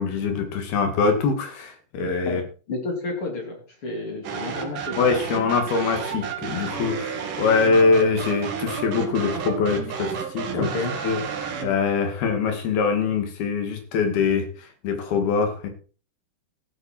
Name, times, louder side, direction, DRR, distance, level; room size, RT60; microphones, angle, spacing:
voice 1, 0.0-2.4 5.0-10.7 11.0-11.2 11.6-15.7, left 5 dB, 70° left, 6 dB, 4.2 m, -23 dB
voice 2, 2.3-5.0 10.5-10.9, left 2 dB, 35° left, 2 dB, 3.3 m, -30 dB
sound 1, 4.2-11.8, right 6 dB, 60° right, 3.3 m, -31 dB
15.0 x 9.5 x 4.5 m, 0.37 s
omnidirectional pair, 4.7 m